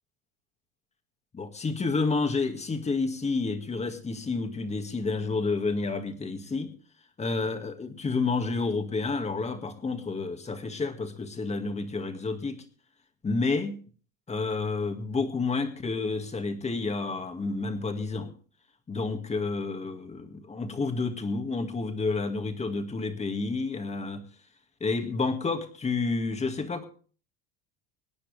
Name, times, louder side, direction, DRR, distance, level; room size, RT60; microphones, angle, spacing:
voice 1, 1.3-6.7 7.2-12.6 13.2-13.8 14.3-18.3 18.9-24.3 24.8-26.9, left 3 dB, 15° left, 6 dB, 2.1 m, -30 dB
25.0 x 9.8 x 3.4 m, 0.41 s
supercardioid pair, 125°, 39 cm